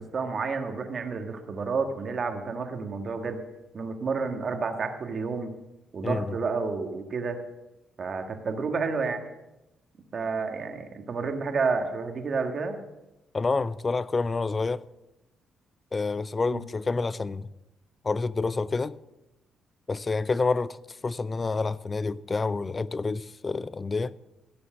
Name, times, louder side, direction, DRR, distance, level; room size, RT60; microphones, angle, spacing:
voice 1, 0.0-3.4 3.7-5.5 5.9-7.4 8.0-9.2 10.1-12.8 16.5-16.6, right 4 dB, 45° right, 1.6 m, -30 dB
voice 2, 6.0-6.4 13.3-14.9 15.9-17.5 18.0-19.0 19.9-24.1, left 3 dB, 30° left, 0.4 m, -28 dB
16.5 x 6.9 x 6.4 m
cardioid pair, 90°, 0 cm